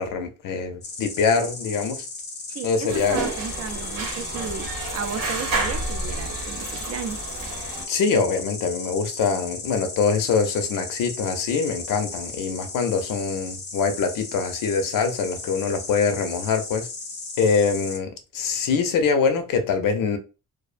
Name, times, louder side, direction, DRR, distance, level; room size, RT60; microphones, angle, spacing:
voice 1, 0.0-2.1 2.6-3.2 7.9-16.9 17.4-20.2, left 5 dB, 75° left, 0.6 m, -24 dB
Insect, 0.8-18.0, left 3 dB, 30° left, 0.5 m, -36 dB
voice 2, 2.5-7.2, right 6 dB, 50° right, 0.4 m, -34 dB
sound 1, 2.9-7.8, right 3 dB, 75° right, 0.9 m, -30 dB
2.5 x 2.0 x 2.4 m
cardioid pair, 120°, 33 cm